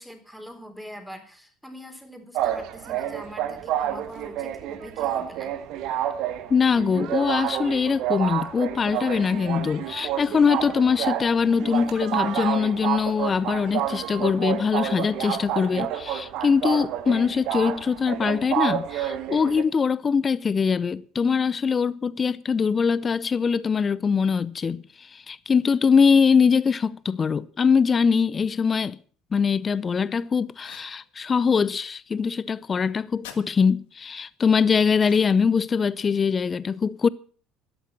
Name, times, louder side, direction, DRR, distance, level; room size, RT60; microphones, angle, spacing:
voice 1, 0.0-5.5, equal, ahead, 3.9 m, -43 dB
sound 1, 2.3-19.6, right 11 dB, 55° right, 1.5 m, -29 dB
voice 2, 6.5-29.0 29.3-37.1, left 6 dB, 30° left, 0.6 m, -22 dB
sound 2, 30.6-31.0 33.2-33.4 34.9-35.5, left 10 dB, 70° left, 1.8 m, -45 dB
12.5 x 11.5 x 7.5 m
hypercardioid pair, 65°, 0 cm